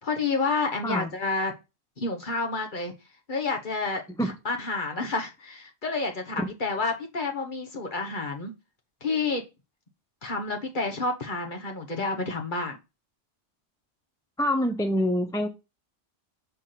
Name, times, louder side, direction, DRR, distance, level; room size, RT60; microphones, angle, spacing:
voice 1, 0.0-1.5 2.0-2.9 3.3-8.5 9.0-9.4 10.2-12.8, left 3 dB, 40° left, 2 dB, 1.4 m, -29 dB
voice 2, 14.4-15.5, equal, 5° left, 7 dB, 0.6 m, -25 dB
6.8 x 3.5 x 5.9 m, 0.26 s
omnidirectional pair, 1.3 m